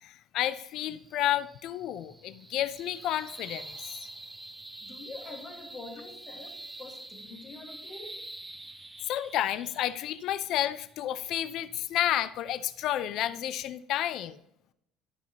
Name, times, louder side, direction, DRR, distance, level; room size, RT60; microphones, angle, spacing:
voice 1, 0.0-4.0 9.1-14.4, left 12 dB, 50° left, 14 dB, 0.4 m, -31 dB
sound 1, 0.7-13.3, right 2 dB, 5° right, 0.4 m, -47 dB
voice 2, 4.8-8.2, left 3 dB, 20° left, 1 dB, 1.8 m, -45 dB
13.0 x 5.6 x 2.9 m, 0.77 s
cardioid pair, 175°, 0 cm